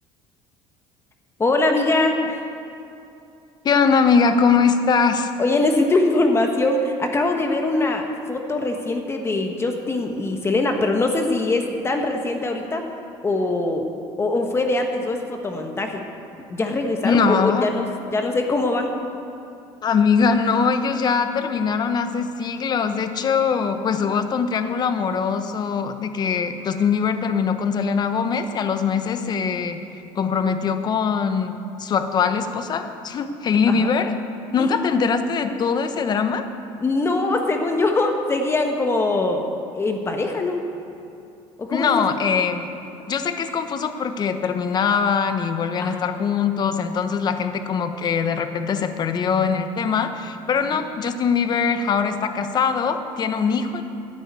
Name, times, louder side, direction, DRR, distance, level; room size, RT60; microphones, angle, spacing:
voice 1, 1.4-2.4 5.4-12.9 13.2-13.9 14.2-16.0 16.5-18.9 33.7-33.9 34.6-34.7 36.8-39.4 39.7-40.6 41.6-41.9 45.8-46.1, left 2 dB, 20° left, 4 dB, 1.3 m, -22 dB
voice 2, 3.6-5.3 17.0-17.7 19.8-29.8 30.1-34.1 34.5-36.4 41.7-42.7 43.1-53.8, left 6 dB, 40° left, 8 dB, 1.0 m, -22 dB
11.0 x 9.8 x 8.4 m, 2.7 s
cardioid pair, 115°, 11 cm